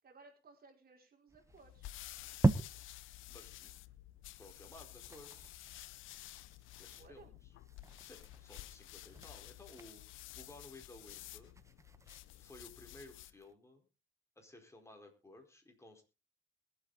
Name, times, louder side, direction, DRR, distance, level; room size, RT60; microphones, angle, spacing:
voice 1, 0.0-1.9 6.9-7.4, right 4 dB, 50° right, 3 dB, 4.5 m, -60 dB
sound 1, 1.3-3.2 3.6-3.7 4.0-4.1 4.4-4.6 4.9-13.5, right 2 dB, 15° right, 1.2 m, -41 dB
sound 2, 1.5-13.4, left 15 dB, 85° left, 0.7 m, -52 dB
voice 2, 3.3-3.7 4.3-5.5 6.8-7.5 8.0-10.0 10.3-11.5 12.4-13.9 14.4-16.0, left 2 dB, 15° left, 3 dB, 4.7 m, -56 dB
22.0 x 8.4 x 4.1 m, 0.32 s
cardioid pair, 90°, 20 cm